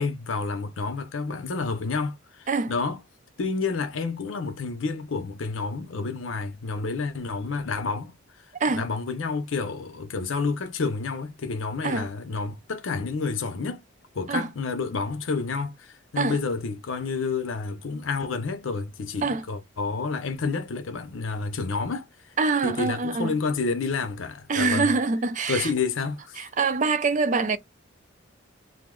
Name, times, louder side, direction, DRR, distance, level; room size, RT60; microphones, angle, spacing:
voice 1, 0.0-3.0 3.4-8.1 8.7-13.8 14.1-22.1 22.6-24.9 25.5-26.4, left 4 dB, 75° left, 0.6 m, -29 dB
voice 2, 22.4-23.3 24.5-25.7 26.4-27.6, right 4 dB, 40° right, 0.4 m, -24 dB
2.6 x 2.1 x 3.6 m
head